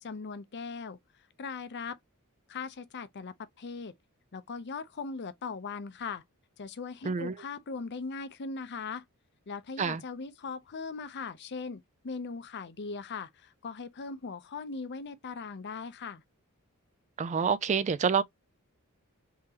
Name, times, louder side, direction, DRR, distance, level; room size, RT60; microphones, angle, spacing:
voice 1, 0.0-1.0 1.4-2.0 2.5-3.9 4.3-6.2 6.6-9.0 9.5-16.2, left 4 dB, 50° left, 0.6 m, -39 dB
voice 2, 17.2-18.2, right 6 dB, 30° right, 0.3 m, -27 dB
3.8 x 2.9 x 2.8 m
head